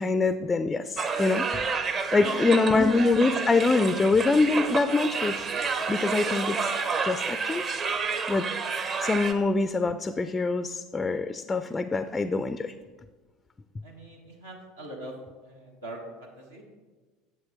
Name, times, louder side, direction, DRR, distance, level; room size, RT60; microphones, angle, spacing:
voice 1, 0.0-1.5 2.1-5.4 5.9-6.7 7.0-8.5 9.0-12.7, left 3 dB, 20° left, 12 dB, 0.3 m, -25 dB
sound 1, 1.0-9.3, right 4 dB, 35° right, 0.7 m, -30 dB
voice 2, 2.1-2.6 13.8-15.2 15.4-16.6, right 1 dB, 80° right, -2 dB, 1.2 m, -42 dB
9.7 x 7.4 x 3.5 m, 1.3 s
figure-of-eight pair, 70°, 0 cm